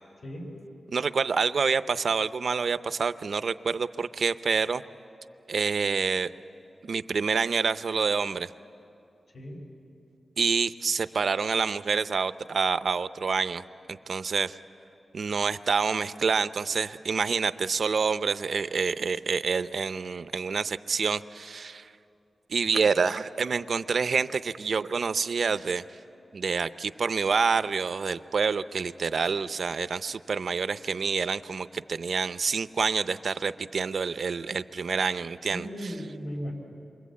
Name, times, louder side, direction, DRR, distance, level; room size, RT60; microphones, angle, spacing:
voice 1, 0.2-0.5 9.3-9.6 35.5-36.5, equal, 60° left, 0 dB, 5.0 m, -36 dB
voice 2, 0.9-4.8 5.5-6.3 6.8-8.5 10.4-13.6 13.9-14.6 15.1-21.9 22.5-25.8 26.3-36.0, right 5 dB, 65° right, 13 dB, 0.6 m, -27 dB
28.5 x 24.0 x 8.4 m, 2.7 s
wide cardioid pair, 125°, 0 cm